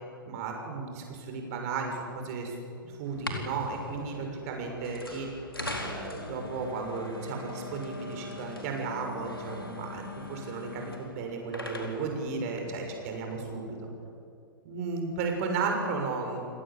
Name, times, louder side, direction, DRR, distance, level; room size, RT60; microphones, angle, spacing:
voice 1, 0.3-2.5 2.8-5.3 5.7-13.8 14.6-16.4, right 4 dB, 45° right, 3 dB, 6.3 m, -34 dB
sound 1, 3.0-13.4, left 2 dB, 90° left, 4.3 m, -41 dB
29.0 x 19.0 x 8.4 m, 2.5 s
figure-of-eight pair, 105°, 12 cm